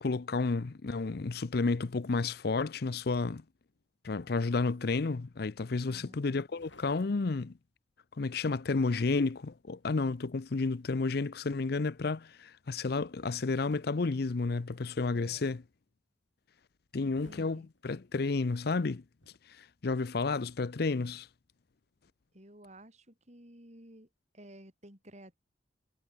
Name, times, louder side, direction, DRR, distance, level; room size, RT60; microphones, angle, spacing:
voice 1, 0.0-3.4 4.0-7.5 8.2-15.6 16.9-19.0 19.6-21.3, left 3 dB, 60° left, 0.6 m, -31 dB
voice 2, 5.8-6.2 15.1-15.5 17.0-17.7 22.3-25.4, right 1 dB, 40° right, 6.9 m, -53 dB
sound 1, 6.5-7.5 8.7-11.1 13.4-15.3 17.1-18.3 19.2-19.4, left 2 dB, 85° left, 7.8 m, -59 dB
head